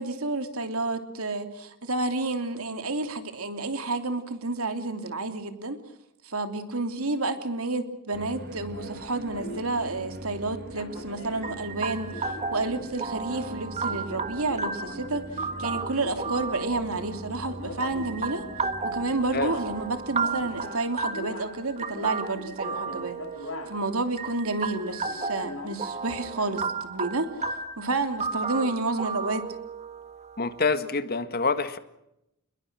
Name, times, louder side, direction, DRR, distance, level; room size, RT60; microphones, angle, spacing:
voice 1, 0.0-5.8 6.2-23.2 23.4-27.3 27.8-29.5, right 2 dB, 75° right, 7 dB, 3.1 m, -30 dB
sound 1, 8.1-20.7, equal, 45° right, 1.6 m, -42 dB
sound 2, 8.2-24.1 24.4-24.5 24.7-27.0 27.3-27.5, left 1 dB, 65° left, 5.1 m, -43 dB
sound 3, 11.4-30.6, right 4 dB, 30° right, 1.6 m, -34 dB
voice 2, 30.4-31.8, left 4 dB, 45° left, 10 dB, 1.8 m, -26 dB
28.0 x 22.0 x 6.2 m, 0.84 s
head